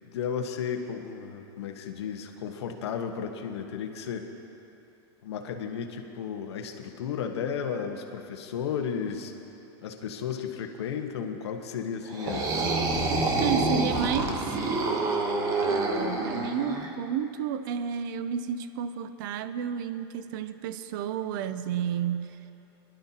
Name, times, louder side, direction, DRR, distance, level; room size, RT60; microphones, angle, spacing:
voice 1, 0.1-4.3 5.2-9.3 9.8-12.5 13.4-14.0 14.2-14.3, left 7 dB, 90° left, 4 dB, 1.3 m, -34 dB
sound 1, 12.1-16.9, right 3 dB, 25° right, 1.0 m, -27 dB
voice 2, 13.4-14.4 15.7-22.4, right 8 dB, 50° right, 12 dB, 0.5 m, -31 dB
23.0 x 11.5 x 2.9 m, 2.9 s
supercardioid pair, 160°, 14 cm